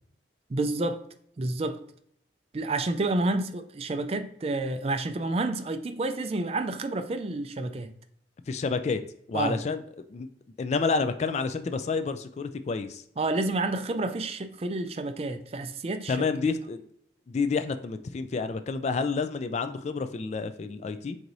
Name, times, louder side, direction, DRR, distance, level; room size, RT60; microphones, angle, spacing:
voice 1, 0.5-1.0 1.4-1.8 2.5-7.9 9.3-9.6 13.2-16.3, right 2 dB, 35° right, 0.4 m, -29 dB
voice 2, 8.5-9.0 9.3-9.8 10.1-10.3 10.6-13.0 16.1-16.8 17.3-21.2, left 4 dB, 40° left, 0.3 m, -29 dB
4.6 x 4.0 x 2.6 m
head